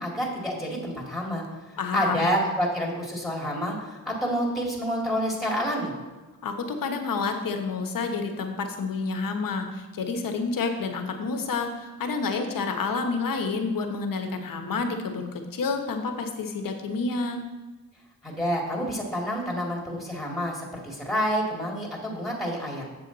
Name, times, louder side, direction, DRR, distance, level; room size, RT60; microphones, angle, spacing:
voice 1, 0.0-1.4 1.7-5.9 18.2-22.8, equal, ahead, -2 dB, 2.3 m, -28 dB
voice 2, 1.8-2.3 6.4-17.4, left 4 dB, 70° left, 5 dB, 1.1 m, -29 dB
7.8 x 7.1 x 4.0 m, 1.2 s
cardioid pair, 85°, 35 cm